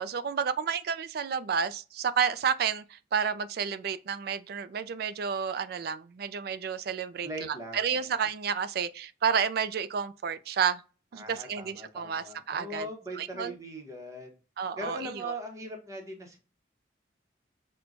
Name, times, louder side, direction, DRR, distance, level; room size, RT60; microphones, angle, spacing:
voice 1, 0.0-10.8 11.1-12.9 13.2-13.6 14.6-15.3, right 7 dB, 55° right, 0.3 m, -31 dB
voice 2, 7.2-8.0 11.2-14.3 14.8-16.4, right 1 dB, 15° right, 0.8 m, -40 dB
6.0 x 2.2 x 2.5 m
head